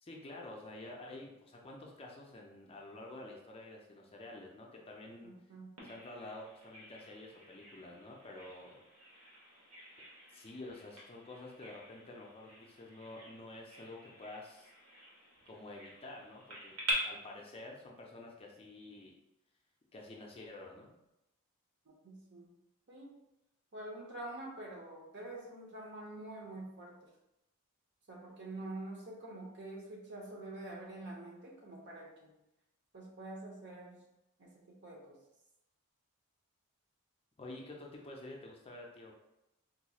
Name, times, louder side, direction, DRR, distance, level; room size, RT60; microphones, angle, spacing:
voice 1, 0.0-5.3 5.8-8.8 10.3-14.7 15.5-16.8 17.0-19.1 19.9-20.9 37.4-39.1, left 2 dB, 25° left, -1 dB, 0.5 m, -49 dB
voice 2, 5.2-5.8 21.9-22.5 22.9-23.2 23.7-27.0 28.1-32.3 32.9-34.0 34.4-35.2, right 2 dB, 50° right, -2 dB, 0.9 m, -47 dB
Bird vocalization bird call bird song, 5.8-16.9, right 1 dB, 85° right, 1.1 m, -47 dB
4.0 x 3.0 x 2.3 m, 0.90 s
head